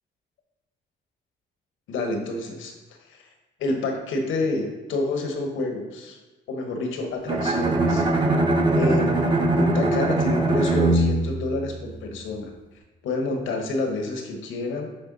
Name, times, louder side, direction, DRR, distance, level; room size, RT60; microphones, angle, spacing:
voice 1, 1.9-2.7 3.1-3.2 3.6-6.2 6.5-8.0 8.7-12.5 13.0-14.9, left 2 dB, 80° left, 3 dB, 1.1 m, -28 dB
Bowed string instrument, 7.3-12.3, right 2 dB, 25° right, 0.7 m, -22 dB
7.8 x 3.3 x 3.9 m, 1.1 s
cardioid pair, 90°, 20 cm